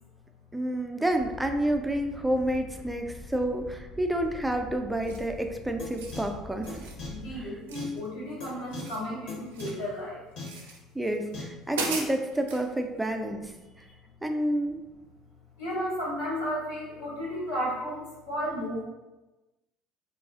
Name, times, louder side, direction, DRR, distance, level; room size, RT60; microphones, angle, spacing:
voice 1, 0.5-6.9 11.0-13.5 14.2-14.8, right 1 dB, 10° right, 4 dB, 0.3 m, -29 dB
sound 1, 1.1-7.5, left 1 dB, 35° left, 0.6 m, -45 dB
sound 2, 5.0-5.4 5.8-6.2 6.6-7.0 7.7-8.3 8.6-9.8 10.4-10.8 11.3-11.4 11.7-12.6, right 3 dB, 85° right, 0.4 m, -37 dB
sound 3, 5.8-5.9 6.1-6.2 6.7-6.8 7.0-7.1 7.7-7.8 8.4-8.5 8.7-8.8 9.3-9.4 9.6-9.7 10.4-10.5 11.3-11.4, left 4 dB, 65° left, 0.9 m, -38 dB
voice 2, 7.1-10.2 15.6-18.8, equal, 90° left, -7 dB, 1.2 m, -33 dB
2.4 x 2.3 x 2.4 m, 1.1 s
hypercardioid pair, 70°, 0 cm